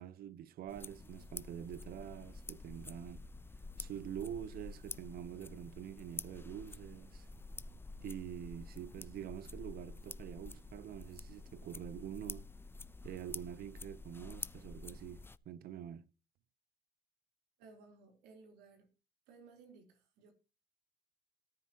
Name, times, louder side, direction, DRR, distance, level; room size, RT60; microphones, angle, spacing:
voice 1, 0.0-3.2 3.8-7.3 8.0-12.5 13.0-16.0, right 10 dB, 65° right, 0.9 m, -46 dB
sound 1, 0.7-15.4, left 3 dB, 15° left, 0.5 m, -49 dB
voice 2, 17.6-18.9 19.3-20.3, right 4 dB, 90° right, 3.9 m, -59 dB
18.0 x 9.5 x 2.9 m
cardioid pair, 110°, 17 cm